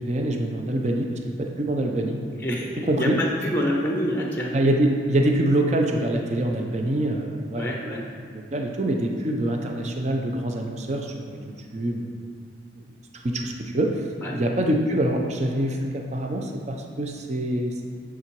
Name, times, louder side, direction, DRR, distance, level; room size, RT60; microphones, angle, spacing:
voice 1, 0.0-2.2 2.9-3.2 4.5-7.7 8.3-12.1 12.7-12.8 13.2-14.1 14.3-17.7, right 1 dB, 40° right, 2 dB, 0.6 m, -25 dB
voice 2, 2.4-4.5 7.6-8.0 14.2-14.4, equal, 10° left, -1 dB, 0.7 m, -27 dB
8.6 x 3.8 x 4.6 m, 2.3 s
head